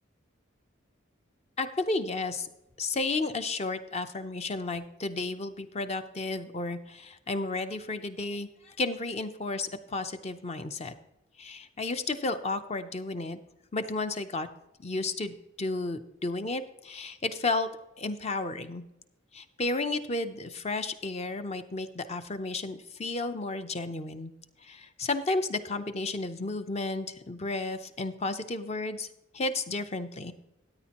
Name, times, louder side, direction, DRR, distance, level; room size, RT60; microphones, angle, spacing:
voice 1, 1.6-2.5 2.8-10.9 11.4-13.4 13.7-14.5 14.8-17.7 18.0-18.8 19.3-24.3 24.6-29.1 29.3-30.3, left 3 dB, 30° left, 10 dB, 0.6 m, -32 dB
14.0 x 9.1 x 2.9 m, 0.89 s
head